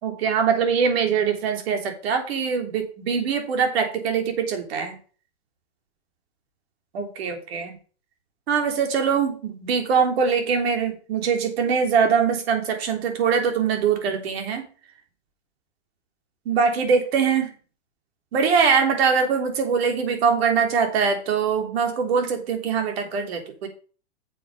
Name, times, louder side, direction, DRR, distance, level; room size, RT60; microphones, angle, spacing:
voice 1, 0.0-4.9 6.9-7.7 8.5-14.6 16.4-17.5 18.3-23.7, right 6 dB, 60° right, 5 dB, 3.2 m, -22 dB
9.2 x 7.0 x 5.0 m, 0.39 s
hypercardioid pair, 130°, 34 cm